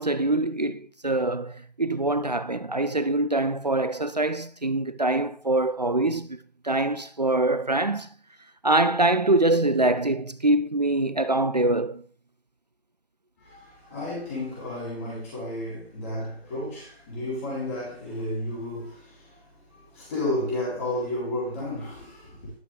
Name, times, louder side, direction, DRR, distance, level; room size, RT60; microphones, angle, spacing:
voice 1, 0.0-6.4 6.6-8.1 8.6-12.0, right 2 dB, 45° right, 0.4 m, -24 dB
voice 2, 13.4-22.5, left 1 dB, 15° left, 3.7 m, -32 dB
11.0 x 7.4 x 3.4 m
figure-of-eight pair, 155°, 31 cm